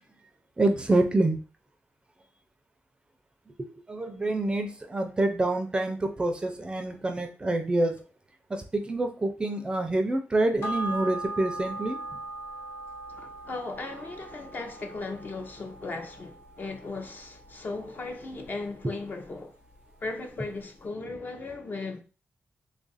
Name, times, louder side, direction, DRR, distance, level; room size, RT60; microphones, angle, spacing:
voice 1, 0.6-1.4 3.6-8.0 8.5-12.2 18.8-18.9, right 2 dB, 20° right, 0.4 m, -27 dB
sound 1, 10.6-19.4 19.7-19.8, right 1 dB, 70° left, 1.0 m, -40 dB
voice 2, 13.1-19.5 20.0-22.0, left 3 dB, 40° left, 0.6 m, -37 dB
3.1 x 2.4 x 3.9 m
wide cardioid pair, 145°, 5 cm